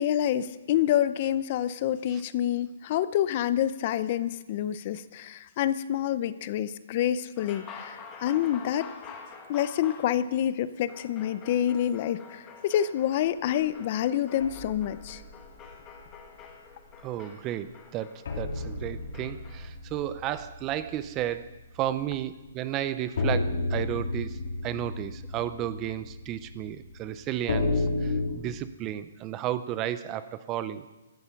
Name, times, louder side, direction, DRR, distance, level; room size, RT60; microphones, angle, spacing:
voice 1, 0.0-8.9 9.5-15.2, left 11 dB, 30° left, 15 dB, 0.5 m, -27 dB
sound 1, 7.4-19.7, left 5 dB, 15° left, 1.5 m, -48 dB
sound 2, 14.4-16.3 16.7-16.9 17.3-17.4 18.2-22.1 22.4-22.5 23.2-28.3, left 2 dB, 55° left, 2.8 m, -32 dB
voice 2, 17.0-21.5 21.7-30.9, right 11 dB, 15° right, 14 dB, 0.4 m, -33 dB
15.5 x 13.0 x 5.8 m, 1.1 s
hypercardioid pair, 170°, 0 cm